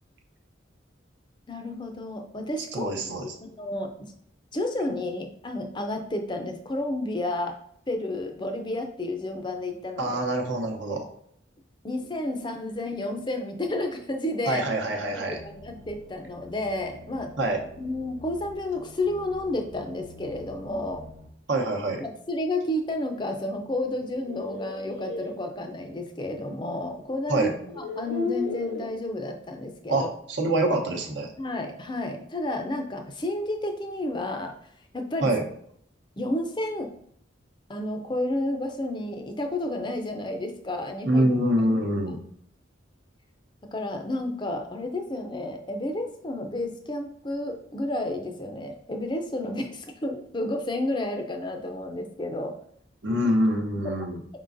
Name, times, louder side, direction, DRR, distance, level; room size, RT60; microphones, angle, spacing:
voice 1, 1.5-4.1 4.5-7.6 7.9-10.2 11.8-14.6 15.1-17.3 17.8-21.1 22.0-27.5 27.8-30.1 31.4-34.5 34.9-35.3 36.2-36.9 37.7-41.3 43.7-52.5 53.8-54.1, left 1 dB, 25° left, 4 dB, 0.5 m, -31 dB
voice 2, 2.7-3.4 10.0-11.0 14.5-15.4 17.4-17.6 21.5-22.0 27.3-27.5 29.9-31.3 35.2-35.4 41.1-42.2 53.0-54.2, right 1 dB, 65° right, 2 dB, 0.8 m, -25 dB
sound 1, 15.3-21.3, left 2 dB, 35° right, 0.8 m, -48 dB
sound 2, 24.0-25.3 26.8-26.9 27.6-28.9, left 3 dB, 70° left, 0.8 m, -33 dB
4.9 x 3.7 x 2.6 m, 0.66 s
head